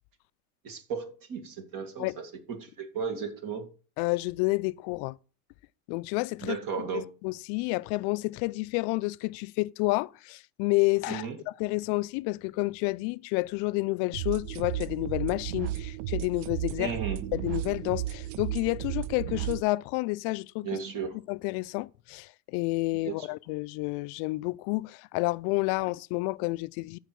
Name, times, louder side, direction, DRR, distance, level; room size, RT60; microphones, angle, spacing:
voice 1, 0.6-3.7 6.4-7.1 11.1-11.4 16.8-17.3 20.6-21.2 23.0-23.3, right 6 dB, 45° right, 2.2 m, -35 dB
voice 2, 4.0-5.2 5.9-6.6 6.9-17.0 17.3-20.7 21.3-27.0, left 23 dB, 60° left, 0.5 m, -30 dB
sound 1, 14.1-19.6, right 14 dB, 65° right, 0.5 m, -34 dB
13.5 x 4.7 x 4.7 m
supercardioid pair, 115°, 47 cm